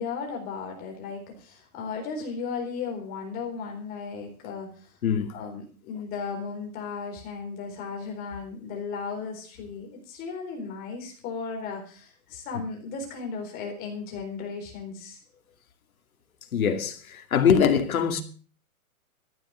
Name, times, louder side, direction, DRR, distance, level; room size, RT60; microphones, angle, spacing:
voice 1, 0.0-4.7 5.3-15.2, left 5 dB, 20° left, 4.1 m, -35 dB
voice 2, 5.0-5.3 16.5-18.2, left 7 dB, 70° left, 2.6 m, -23 dB
14.0 x 10.5 x 6.3 m
hypercardioid pair, 165°, 44 cm